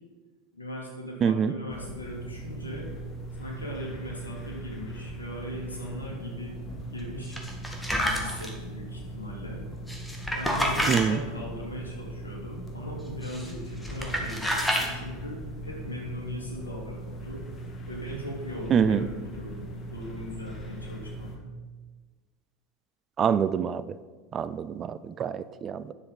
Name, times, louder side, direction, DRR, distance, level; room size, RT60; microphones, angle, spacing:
voice 1, 0.5-2.9 3.4-6.6 6.9-7.4 8.0-9.6 10.3-17.4 17.9-21.3, left 1 dB, 90° left, -2 dB, 2.6 m, -39 dB
voice 2, 1.2-1.5 10.9-11.2 18.7-19.0 23.2-24.0 24.3-25.9, right 7 dB, 35° right, 15 dB, 0.5 m, -25 dB
sound 1, 1.7-21.4, right 1 dB, 35° left, 2.1 m, -39 dB
sound 2, 7.3-8.5 9.9-11.0 13.2-13.5 13.8-14.9, equal, 5° left, 1.9 m, -28 dB
10.0 x 6.9 x 5.3 m, 1.4 s
figure-of-eight pair, 80°, 0 cm